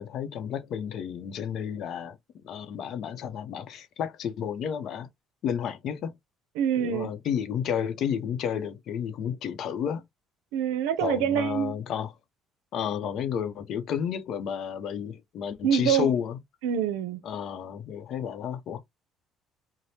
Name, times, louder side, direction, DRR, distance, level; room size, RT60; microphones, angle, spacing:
voice 1, 0.0-2.2 2.4-5.1 5.4-6.1 6.8-10.0 11.0-12.1 12.7-16.4 17.2-18.8, left 8 dB, 65° left, 0.7 m, -31 dB
voice 2, 6.6-7.1 10.5-11.7 15.6-16.1 16.6-17.2, right 9 dB, 90° right, 0.5 m, -25 dB
2.7 x 2.1 x 3.3 m
supercardioid pair, 75°, 0 cm